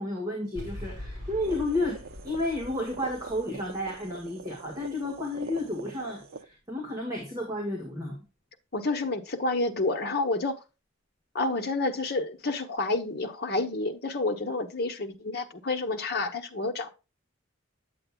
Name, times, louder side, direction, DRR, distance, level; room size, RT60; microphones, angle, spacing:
voice 1, 0.0-8.2, left 1 dB, 15° right, 1.9 m, -32 dB
sound 1, 0.6-5.7, left 1 dB, 40° right, 5.2 m, -44 dB
sound 2, 1.4-6.4, right 4 dB, 85° right, 0.7 m, -44 dB
voice 2, 8.7-10.6 11.3-16.9, left 2 dB, 50° left, 1.1 m, -29 dB
9.2 x 7.6 x 2.3 m
head